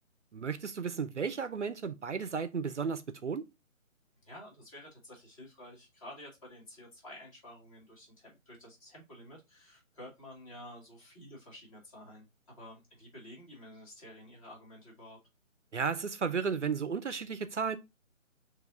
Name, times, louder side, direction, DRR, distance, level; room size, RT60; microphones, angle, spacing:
voice 1, 0.3-3.4 15.7-17.8, right 5 dB, 60° right, 0.6 m, -34 dB
voice 2, 4.2-12.3 12.6-15.2, left 1 dB, 25° left, 2.1 m, -51 dB
6.8 x 3.1 x 2.4 m
figure-of-eight pair, 150°, 41 cm